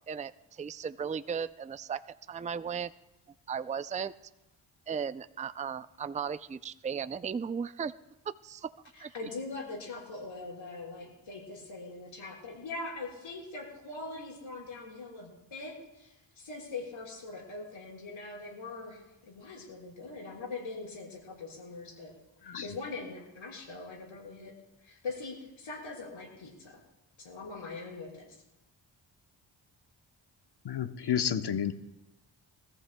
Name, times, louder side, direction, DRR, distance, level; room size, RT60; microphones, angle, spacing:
voice 1, 0.1-2.0 2.3-2.9 3.5-4.1 4.9-7.9 8.4-8.7 9.0-9.1, right 7 dB, 15° right, 13 dB, 0.4 m, -36 dB
voice 2, 8.9-22.1 22.6-24.6 24.8-26.8 27.2-28.3, left 3 dB, 80° left, -3 dB, 5.2 m, -42 dB
voice 3, 22.4-22.8 30.6-31.7, left 8 dB, 55° left, 10 dB, 1.0 m, -31 dB
24.0 x 14.5 x 2.3 m, 0.93 s
cardioid pair, 55°, 47 cm